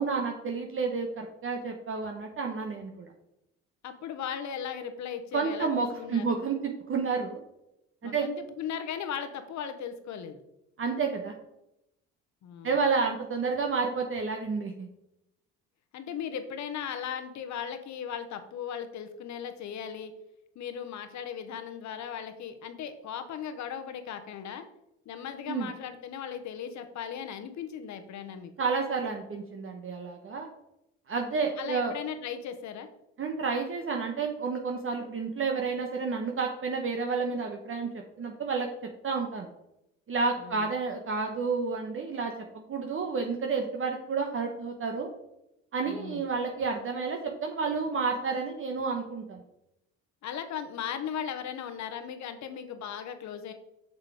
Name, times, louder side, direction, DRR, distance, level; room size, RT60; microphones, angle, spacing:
voice 1, 0.0-3.1 5.3-7.4 8.0-8.3 10.8-11.3 12.6-14.9 25.5-25.7 28.6-30.5 31.1-31.9 33.2-37.9 38.2-38.7 39.0-39.5 40.1-45.1 45.7-49.4, right 4 dB, 40° right, 3 dB, 1.2 m, -30 dB
voice 2, 3.8-5.7 6.0-6.4 8.0-10.4 12.4-12.8 15.9-20.1 20.5-24.6 25.0-28.5 31.6-32.9 40.4-40.7 45.8-46.2 50.2-53.5, left 8 dB, 60° left, 9 dB, 1.2 m, -37 dB
6.4 x 6.2 x 4.9 m, 0.86 s
supercardioid pair, 70°, 32 cm